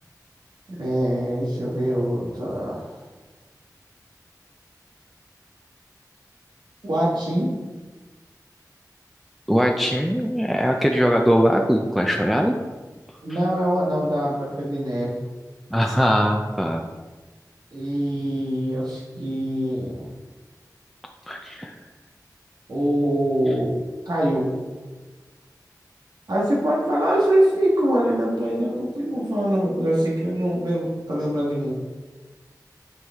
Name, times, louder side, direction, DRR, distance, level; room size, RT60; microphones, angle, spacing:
voice 1, 0.8-2.9 6.8-7.5 13.2-15.1 17.7-20.0 22.7-23.7 24.0-24.5 26.3-31.7, right 1 dB, 90° right, -6 dB, 1.6 m, -23 dB
voice 2, 9.5-12.5 13.3-13.4 15.7-16.8 21.3-21.7, equal, ahead, 1 dB, 0.5 m, -21 dB
9.4 x 4.6 x 3.6 m, 1.3 s
wide cardioid pair, 50°, 7 cm